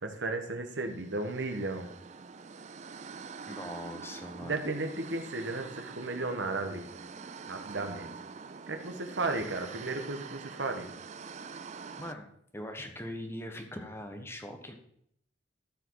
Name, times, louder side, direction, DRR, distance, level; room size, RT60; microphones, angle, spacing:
voice 1, 0.0-1.9 4.4-6.9 7.5-8.1 8.7-10.9, right 2 dB, 75° right, 5 dB, 1.3 m, -34 dB
sound 1, 0.9-12.1, right 5 dB, 40° right, 0.5 m, -45 dB
voice 2, 3.5-4.6 12.0-14.7, left 1 dB, 15° left, 4 dB, 1.3 m, -41 dB
13.5 x 5.0 x 4.7 m, 0.71 s
head